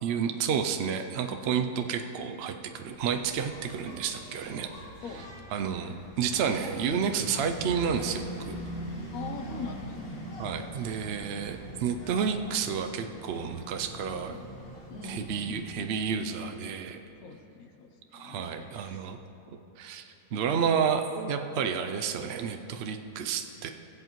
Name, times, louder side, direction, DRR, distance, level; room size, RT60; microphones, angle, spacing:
voice 1, 0.0-4.7 5.5-8.6 10.4-14.4 15.0-17.0 18.1-19.2 19.5-20.0 20.3-23.7, right 7 dB, 75° right, 6 dB, 0.6 m, -30 dB
Engine, 2.9-15.9, right 1 dB, 40° left, 1.6 m, -42 dB
voice 2, 5.0-5.3 9.1-10.4 14.0-14.5 14.9-15.9 17.2-19.1, left 5 dB, 65° left, 5 dB, 1.1 m, -43 dB
20.5 x 7.9 x 3.1 m, 3.0 s
omnidirectional pair, 1.7 m